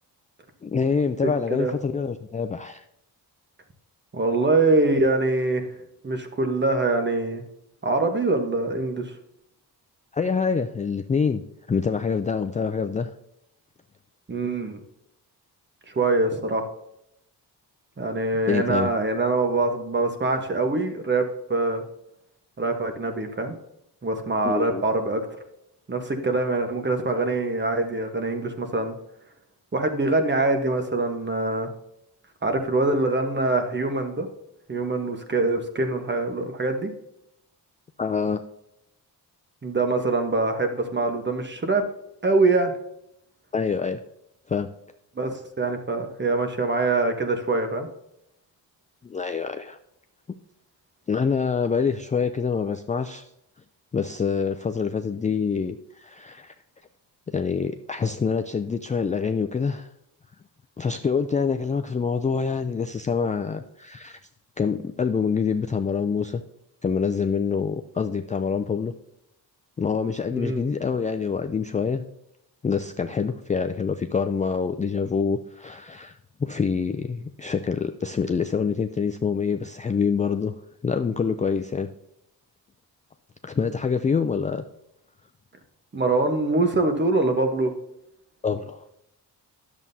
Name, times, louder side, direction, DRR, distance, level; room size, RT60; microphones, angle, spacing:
voice 1, 0.6-2.8 10.1-11.4 11.7-13.1 18.5-18.9 24.4-24.8 38.0-38.4 43.5-44.0 44.5-44.7 49.0-49.8 51.1-53.3 53.9-56.5 57.3-59.9 60.8-64.2 64.6-66.4 66.8-68.9 69.8-72.0 72.6-80.5 80.8-81.9 83.4-84.6 88.4-88.8, left 5 dB, 20° left, 7 dB, 0.3 m, -26 dB
voice 2, 4.1-5.6 6.0-7.4 7.8-9.1 14.3-14.8 15.9-16.6 18.0-21.8 22.6-23.5 24.0-25.2 25.9-28.9 29.7-31.7 32.4-34.3 34.7-36.9 39.6-41.8 42.2-42.7 45.2-45.3 45.6-47.9 70.3-70.6 85.9-87.7, right 2 dB, 25° right, 6 dB, 1.1 m, -24 dB
10.5 x 7.3 x 2.7 m, 0.82 s
cardioid pair, 100°, 41 cm